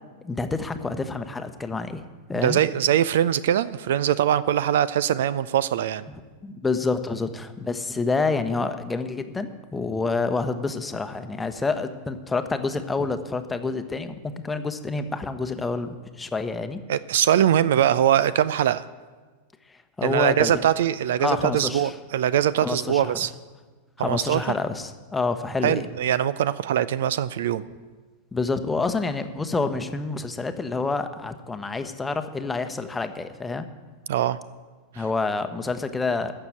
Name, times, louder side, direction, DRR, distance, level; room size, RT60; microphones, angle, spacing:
voice 1, 0.2-2.0 2.3-2.6 6.4-16.8 19.7-20.7 21.2-21.9 22.6-23.2 24.0-25.9 28.3-33.7 34.9-36.3, left 3 dB, 10° left, 9 dB, 0.9 m, -28 dB
voice 2, 2.4-6.0 16.9-18.9 20.0-23.3 24.0-24.4 25.6-27.6 34.1-34.4, right 10 dB, 60° right, 18 dB, 0.4 m, -22 dB
14.0 x 6.7 x 8.9 m, 1.4 s
figure-of-eight pair, 90°, 0 cm